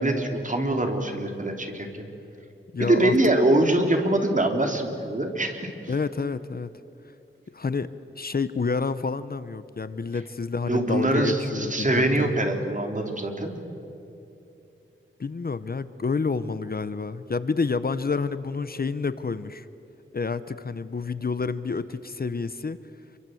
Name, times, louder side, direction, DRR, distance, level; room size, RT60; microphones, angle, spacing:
voice 1, 0.0-2.1 2.8-5.6 10.7-13.6, right 1 dB, 35° right, 4 dB, 3.3 m, -23 dB
voice 2, 2.7-3.2 5.9-6.7 7.5-12.4 15.2-19.7 20.1-22.8, left 4 dB, 45° left, 14 dB, 0.8 m, -29 dB
27.5 x 24.0 x 7.8 m, 2.9 s
wide cardioid pair, 105°, 21 cm